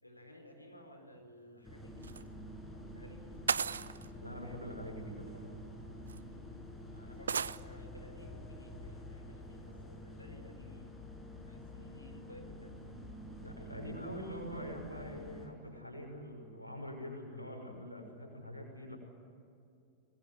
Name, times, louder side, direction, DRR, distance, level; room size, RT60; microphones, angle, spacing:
voice 1, 0.0-2.3 2.9-3.5 6.9-11.0 11.5-12.7, equal, 85° left, 4 dB, 4.0 m, -56 dB
sound 1, 1.6-15.5, left 1 dB, 5° left, 6.8 m, -48 dB
sound 2, 2.0-2.2 3.5-4.1 5.3-5.4 6.1-6.2 7.3-7.6, right 6 dB, 70° right, 0.5 m, -34 dB
voice 2, 4.2-5.5 13.4-19.0, equal, 90° right, 1 dB, 6.3 m, -44 dB
25.0 x 21.0 x 9.8 m, 2.5 s
figure-of-eight pair, 90°, 0 cm